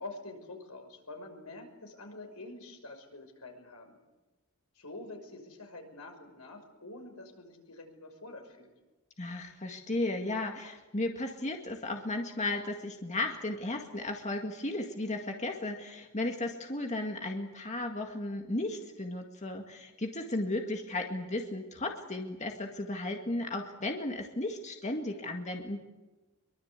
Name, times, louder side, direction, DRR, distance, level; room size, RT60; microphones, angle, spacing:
voice 1, 0.0-4.0 4.8-8.7, left 2 dB, 85° left, 4 dB, 6.0 m, -46 dB
voice 2, 9.2-25.8, left 2 dB, 35° left, 3 dB, 2.0 m, -35 dB
24.5 x 23.0 x 8.3 m, 1.1 s
head